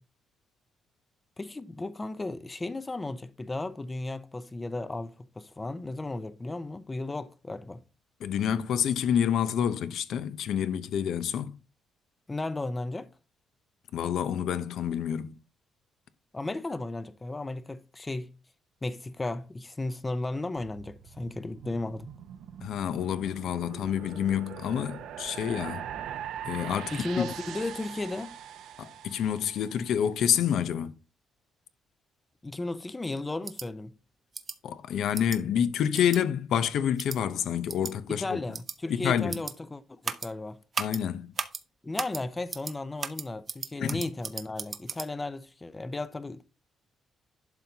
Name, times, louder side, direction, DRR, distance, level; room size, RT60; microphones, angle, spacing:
voice 1, 1.4-7.8 12.3-13.1 16.3-18.3 18.8-22.1 26.9-28.3 32.4-33.9 38.1-40.6 41.8-46.4, left 2 dB, 20° left, 0.6 m, -35 dB
voice 2, 8.2-11.5 13.9-15.3 22.6-25.8 26.5-27.3 28.8-30.9 34.6-38.4 38.9-39.4 40.8-41.3 43.8-44.0, left 9 dB, 75° left, 0.7 m, -28 dB
sound 1, 20.6-29.9, right 9 dB, 80° right, 0.7 m, -42 dB
sound 2, 33.4-33.7 34.3-34.6 35.1-35.4 35.9-36.2 37.0-37.2 37.7-37.9 38.5-38.8 39.3-39.5 40.0-40.3 40.7-41.0 41.4-41.6 42.0-42.2 42.5-42.7 43.0-45.1, right 5 dB, 40° right, 0.8 m, -35 dB
11.5 x 3.9 x 2.8 m
cardioid pair, 90°, 0 cm